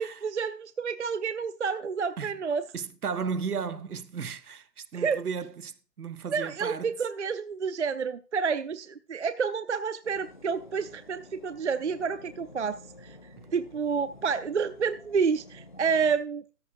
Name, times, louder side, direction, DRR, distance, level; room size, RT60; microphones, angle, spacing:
voice 1, 0.0-2.6 4.9-5.2 6.3-13.2 13.5-16.4, right 5 dB, 50° right, 0.5 m, -29 dB
voice 2, 2.7-6.9 13.4-13.5, right 6 dB, 65° right, 1.0 m, -35 dB
sound 1, 10.0-16.1, left 2 dB, 30° left, 0.5 m, -51 dB
13.5 x 10.5 x 2.5 m
figure-of-eight pair, 150°, 49 cm